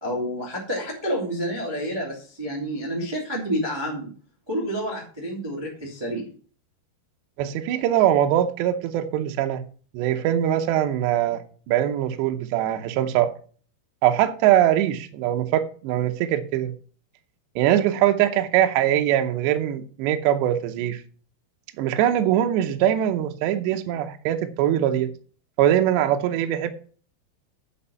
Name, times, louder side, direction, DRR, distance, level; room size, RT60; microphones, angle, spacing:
voice 1, 0.0-4.1 4.5-6.3, equal, 10° right, 1.2 m, -29 dB
voice 2, 7.4-9.6 9.9-13.3 14.0-16.7 17.6-21.0 21.8-25.1 25.6-26.7, right 11 dB, 80° right, 2.8 m, -22 dB
9.8 x 6.1 x 5.5 m
omnidirectional pair, 5.4 m